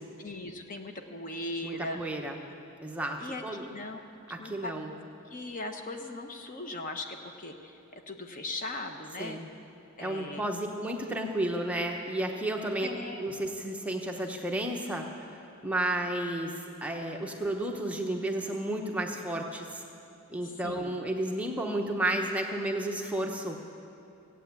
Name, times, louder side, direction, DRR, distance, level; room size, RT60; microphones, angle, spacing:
voice 1, 0.0-2.1 3.2-4.0 4.4-4.7 5.3-7.8 8.1-9.4 10.0-10.5 12.8-13.3 20.4-21.0, left 2 dB, 35° left, 5 dB, 0.9 m, -39 dB
voice 2, 1.6-2.4 2.8-3.7 4.3-4.9 9.2-9.5 10.0-12.9 13.2-15.1 15.6-19.8 20.3-23.6, right 1 dB, 5° right, 1 dB, 0.9 m, -32 dB
16.5 x 8.6 x 8.2 m, 2.7 s
head